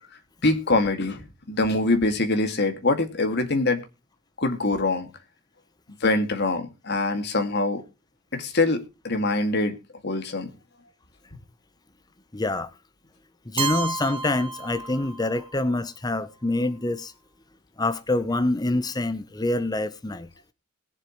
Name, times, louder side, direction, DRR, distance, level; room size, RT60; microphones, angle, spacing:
voice 1, 0.4-3.8 4.4-5.1 6.0-7.8 8.3-9.8 10.0-10.5, left 2 dB, 55° left, 2.1 m, -24 dB
voice 2, 12.3-12.7 13.5-17.1 17.8-20.3, left 2 dB, 20° left, 0.8 m, -26 dB
Keyboard (musical), 13.6-15.5, right 4 dB, 25° right, 1.1 m, -31 dB
21.0 x 7.5 x 3.0 m
head